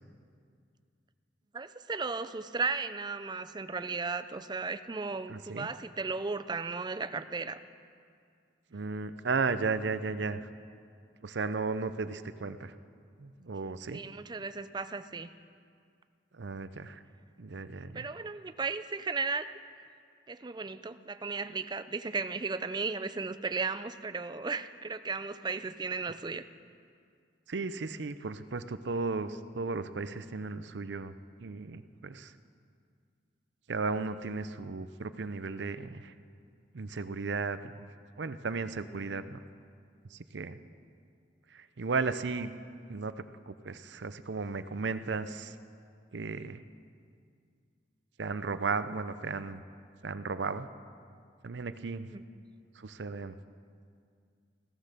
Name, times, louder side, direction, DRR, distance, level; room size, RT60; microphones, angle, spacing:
voice 1, 1.5-7.6 13.9-15.3 17.9-19.5 20.3-26.5 52.1-52.2, right 4 dB, 25° right, 12 dB, 0.5 m, -35 dB
voice 2, 5.3-5.7 8.7-10.4 11.2-12.7 13.2-14.0 16.3-17.0 17.4-18.1 27.5-31.1 31.4-32.3 33.7-36.1 36.7-37.8 38.2-39.4 40.1-40.6 41.5-42.5 42.9-43.1 43.5-45.5 46.1-46.6 48.2-49.6 50.0-50.7 51.4-52.1 52.8-53.3, right 4 dB, 75° right, 12 dB, 0.6 m, -35 dB
16.0 x 13.5 x 6.7 m, 2.3 s
head